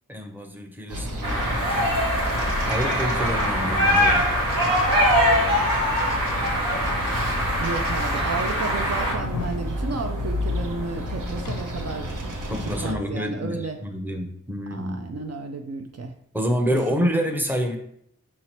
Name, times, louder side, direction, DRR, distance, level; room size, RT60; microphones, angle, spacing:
voice 1, 0.1-1.9 2.7-4.2 12.5-15.0 16.3-17.8, equal, 5° right, 4 dB, 0.7 m, -28 dB
sound 1, 0.9-12.9, equal, 70° right, 0.8 m, -31 dB
sound 2, 1.2-9.1, equal, 85° right, 1.3 m, -23 dB
voice 2, 7.6-12.2 12.6-13.8 14.7-16.1 16.9-17.0, right 4 dB, 50° right, 4 dB, 0.4 m, -33 dB
sound 3, 9.1-9.6 11.4-12.1 12.4-12.5, left 4 dB, 90° left, 0.5 m, -35 dB
5.7 x 2.9 x 3.0 m, 0.69 s
wide cardioid pair, 50°, 32 cm